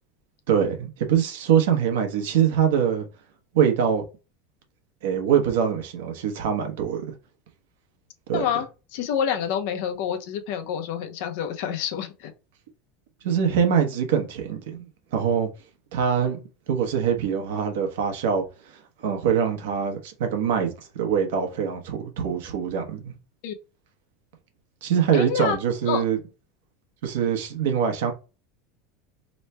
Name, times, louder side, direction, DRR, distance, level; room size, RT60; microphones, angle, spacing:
voice 1, 0.5-3.1 3.5-4.0 5.0-7.0 8.3-8.4 13.2-14.8 15.1-15.5 15.9-16.4 16.7-18.4 19.0-23.1 24.8-26.2 27.0-28.1, right 8 dB, 80° right, 0.9 m, -23 dB
voice 2, 8.3-12.3 23.4-23.5 25.1-25.6 25.9-26.0, left 8 dB, 55° left, 0.6 m, -28 dB
3.1 x 2.2 x 4.2 m
supercardioid pair, 175°, 0 cm